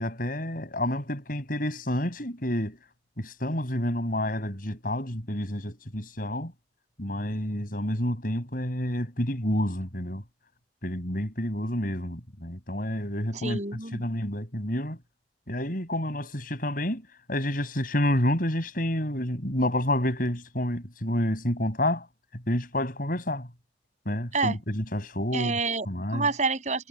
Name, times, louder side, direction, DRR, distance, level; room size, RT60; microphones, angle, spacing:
voice 1, 0.0-2.8 3.2-6.5 7.0-10.2 10.8-13.6 13.9-15.0 15.5-17.0 17.3-22.1 22.5-23.5 24.1-25.5 25.9-26.3, left 1 dB, 50° left, 6.1 m, -29 dB
voice 2, 13.4-14.0 24.3-24.5 25.3-25.9 26.1-26.9, right 4 dB, 40° right, 8.0 m, -28 dB
head